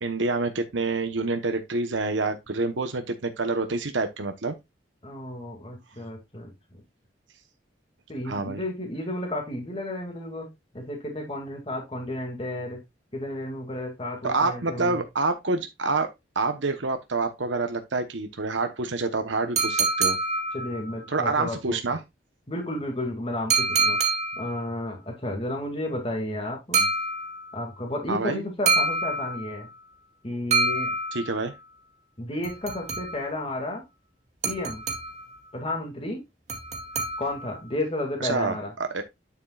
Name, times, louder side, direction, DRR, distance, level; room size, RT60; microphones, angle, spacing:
voice 1, 0.0-4.5 8.2-8.6 14.2-20.2 21.1-22.0 28.1-28.4 31.1-31.5 38.2-38.5 38.8-39.0, right 3 dB, 75° right, 1.0 m, -27 dB
voice 2, 5.0-6.8 8.1-12.8 13.1-15.0 20.5-22.0 22.5-24.0 24.4-26.9 27.5-29.7 30.2-30.9 32.2-33.8 34.4-34.8 35.5-36.2 37.2-38.7, left 1 dB, 30° left, 2.2 m, -32 dB
sound 1, 19.6-21.0 23.5-24.6 26.7-27.6 28.7-29.7 30.5-31.5 32.4-33.4 34.4-35.3 36.5-37.6, right 3 dB, 35° right, 2.5 m, -26 dB
9.4 x 7.2 x 2.4 m
head